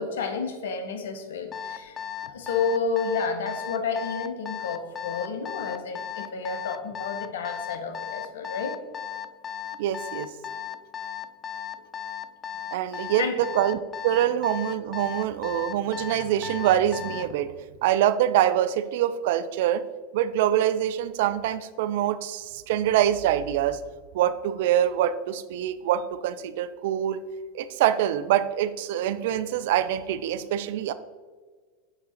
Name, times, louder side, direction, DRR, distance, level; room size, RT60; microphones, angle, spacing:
voice 1, 0.0-2.0 2.2-8.8 12.9-13.4, left 5 dB, 75° left, 7 dB, 0.9 m, -30 dB
Alarm, 1.5-17.3, left 9 dB, 25° left, 0.4 m, -35 dB
voice 2, 9.8-10.3 12.7-17.5 17.8-19.8 20.1-23.8 24.1-27.2 27.5-30.9, right 11 dB, 65° right, 13 dB, 0.4 m, -25 dB
9.0 x 3.7 x 4.2 m, 1.5 s
hypercardioid pair, 95°, 0 cm